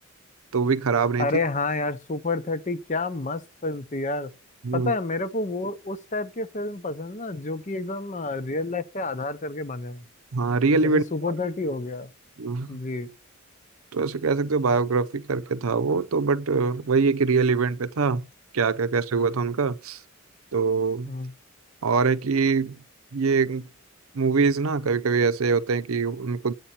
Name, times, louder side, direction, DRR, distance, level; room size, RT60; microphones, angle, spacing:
voice 1, 0.5-1.3 4.6-4.9 10.3-11.3 12.4-12.8 13.9-18.3 18.5-20.0 20.5-21.1 21.8-22.8 23.1-23.7 24.1-26.5, right 4 dB, 85° right, 0.6 m, -23 dB
voice 2, 1.2-4.3 4.7-10.0 10.8-12.1 12.7-13.1 21.1-21.3, left 3 dB, 35° left, 0.8 m, -29 dB
9.9 x 8.1 x 4.3 m
head